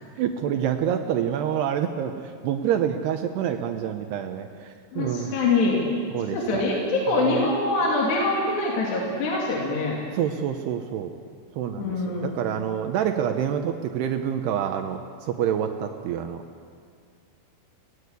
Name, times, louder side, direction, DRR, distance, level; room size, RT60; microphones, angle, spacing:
voice 1, 0.2-5.4 6.1-6.6 7.1-7.5 10.1-11.1 11.6-16.4, right 9 dB, 85° right, 5 dB, 2.4 m, -27 dB
voice 2, 4.9-5.8 6.3-10.0 11.8-12.3, left 2 dB, 60° left, -3 dB, 4.6 m, -24 dB
27.0 x 19.5 x 8.2 m, 2.1 s
omnidirectional pair, 6.0 m